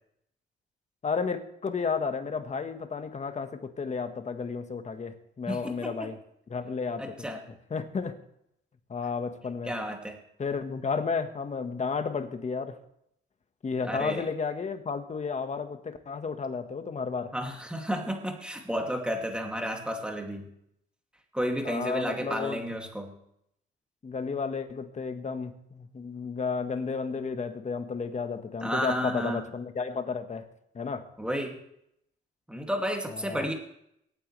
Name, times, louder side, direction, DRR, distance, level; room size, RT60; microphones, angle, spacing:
voice 1, 1.0-6.2 6.5-7.3 7.7-8.2 8.9-9.7 10.4-12.8 13.6-17.3 21.6-22.6 24.0-30.4 30.7-31.1 33.1-33.4, left 5 dB, 35° left, 8 dB, 1.5 m, -32 dB
voice 2, 5.5-6.1 7.0-7.4 9.6-10.2 13.8-14.3 17.3-20.5 21.3-23.1 28.6-29.4 31.2-31.6 32.5-33.5, equal, 5° right, 2 dB, 2.5 m, -32 dB
23.5 x 9.2 x 3.3 m, 0.76 s
cardioid pair, 90°, 20 cm